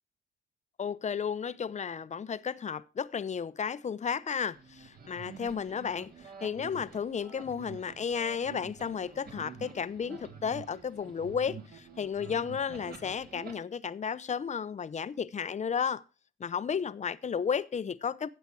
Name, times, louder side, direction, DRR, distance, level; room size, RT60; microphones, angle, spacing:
voice 1, 0.8-6.1 6.4-16.0 16.4-18.3, left 7 dB, 35° left, 0.8 m, -33 dB
sound 1, 4.5-13.5, right 5 dB, 50° right, 3.2 m, -48 dB
14.0 x 8.2 x 4.7 m
cardioid pair, 90°, 20 cm